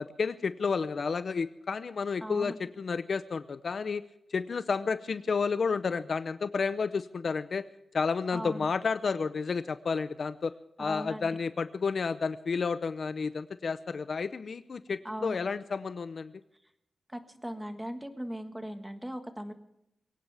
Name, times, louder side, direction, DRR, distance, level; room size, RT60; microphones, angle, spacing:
voice 1, 0.0-4.0 4.3-7.7 7.9-10.5 10.8-16.3, left 5 dB, 50° left, 13 dB, 0.6 m, -31 dB
voice 2, 2.2-2.5 8.3-8.7 10.8-11.3 15.0-15.4 17.1-19.5, equal, 5° right, 7 dB, 1.5 m, -38 dB
22.5 x 18.0 x 3.4 m, 0.80 s
wide cardioid pair, 150°, 0 cm